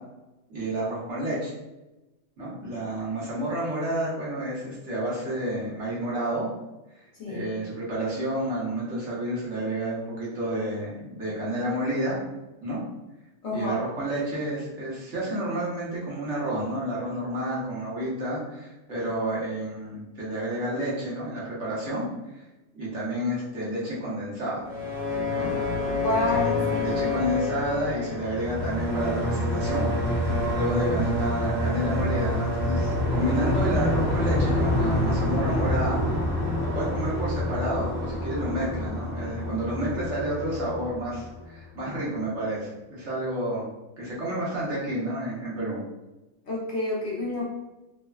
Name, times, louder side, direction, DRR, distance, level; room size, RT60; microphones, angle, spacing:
voice 1, 0.5-1.5 2.4-6.5 6.9-12.2 12.6-12.8 13.5-22.0 22.3-22.4 22.7-24.6 25.3-25.5 26.1-36.0 36.7-43.7 44.0-45.8, right 1 dB, 60° right, -7 dB, 1.2 m, -30 dB
voice 2, 13.4-13.8 25.9-26.9 46.5-47.5, left 1 dB, 60° left, -5 dB, 0.9 m, -29 dB
sound 1, 24.6-41.5, left 1 dB, 40° right, 0.8 m, -27 dB
3.2 x 2.1 x 2.3 m, 1.0 s
omnidirectional pair, 1.5 m